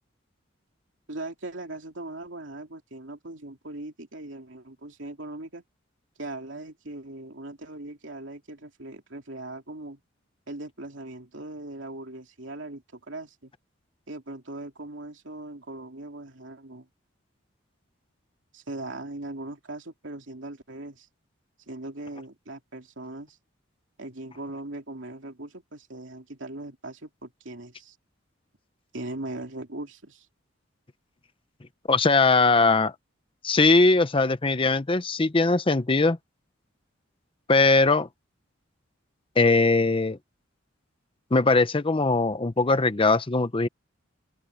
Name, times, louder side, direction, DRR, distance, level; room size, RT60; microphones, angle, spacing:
voice 1, 1.1-5.6 6.2-10.0 10.5-13.5 14.1-16.9 18.5-21.1 21.7-23.4 24.0-28.0 28.9-30.3, right 2 dB, 70° right, 3.1 m, -39 dB
voice 2, 31.9-32.9 33.4-36.2 37.5-38.1 39.4-40.2 41.3-43.7, left 3 dB, 25° left, 0.7 m, -20 dB
open air
head